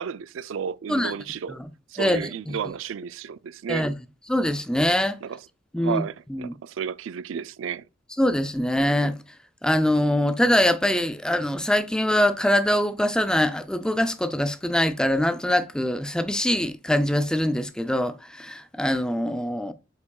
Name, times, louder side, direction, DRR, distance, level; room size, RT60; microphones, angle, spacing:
voice 1, 0.0-1.6 1.9-3.9 5.2-5.4 5.8-7.8, right 7 dB, 85° right, 0.4 m, -32 dB
voice 2, 2.0-2.5 3.7-3.9 4.3-5.2 5.7-6.0 6.3-6.5 8.2-9.2 9.6-19.7, left 1 dB, 5° left, 0.4 m, -23 dB
8.3 x 4.9 x 2.3 m
head